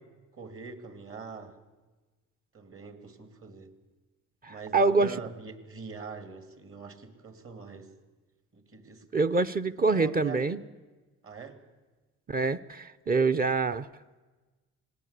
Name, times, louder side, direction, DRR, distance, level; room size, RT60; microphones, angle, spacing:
voice 1, 0.3-1.6 2.5-3.7 4.5-7.9 8.5-9.3 9.8-10.6 11.2-11.6, right 5 dB, 45° right, 9 dB, 2.5 m, -43 dB
voice 2, 4.4-5.1 9.1-10.6 12.3-13.9, right 3 dB, 30° right, 9 dB, 0.7 m, -25 dB
19.0 x 18.0 x 8.2 m, 1.3 s
cardioid pair, 90°, 30 cm